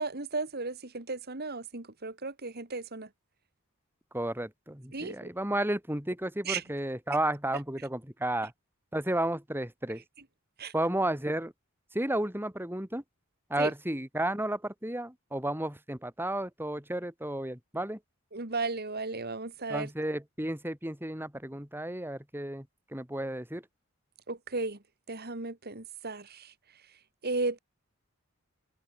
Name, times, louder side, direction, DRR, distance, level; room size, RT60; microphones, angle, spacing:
voice 1, 0.0-3.1 4.9-5.3 6.4-6.6 10.6-10.7 13.6-13.7 18.3-19.9 24.3-24.8 25.1-26.5 27.2-27.6, right 3 dB, 50° right, 2.5 m, -35 dB
voice 2, 4.1-8.5 8.9-10.0 10.7-11.5 11.9-13.0 13.5-18.0 19.7-22.7 22.9-23.6, right 1 dB, 10° right, 4.5 m, -32 dB
head